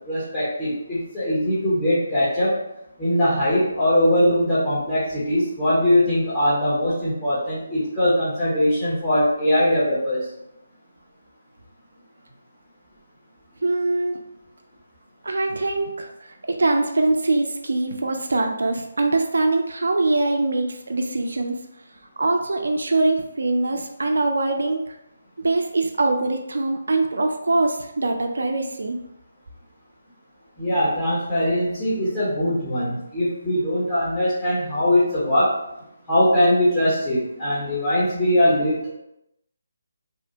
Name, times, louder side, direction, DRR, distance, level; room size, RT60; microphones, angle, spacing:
voice 1, 0.1-2.5 3.0-10.3 30.6-35.6 36.1-38.9, left 1 dB, 15° left, -13 dB, 0.9 m, -21 dB
voice 2, 13.6-14.2 15.2-21.7 22.2-24.9 25.4-29.0, right 2 dB, 70° right, 4 dB, 0.3 m, -23 dB
2.7 x 2.1 x 2.6 m, 0.84 s
figure-of-eight pair, 150°, 0 cm